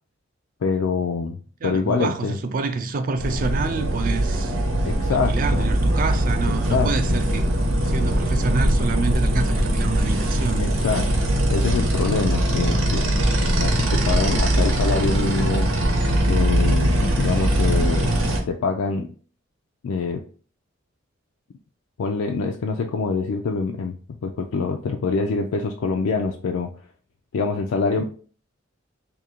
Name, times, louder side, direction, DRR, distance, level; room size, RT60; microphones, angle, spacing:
voice 1, 0.6-1.4 1.6-2.4 4.8-5.7 6.5-6.9 10.6-11.1 11.5-13.0 13.6-15.7 16.3-18.2 18.5-19.1 19.8-20.2 22.0-26.7 27.3-28.0, left 4 dB, 90° left, 0.4 m, -25 dB
voice 2, 1.6-4.5 5.1-7.4 7.8-10.7 28.0-28.1, right 4 dB, 45° right, 0.4 m, -27 dB
sound 1, 3.2-18.4, right 1 dB, 80° right, 0.8 m, -21 dB
2.7 x 2.5 x 4.3 m
head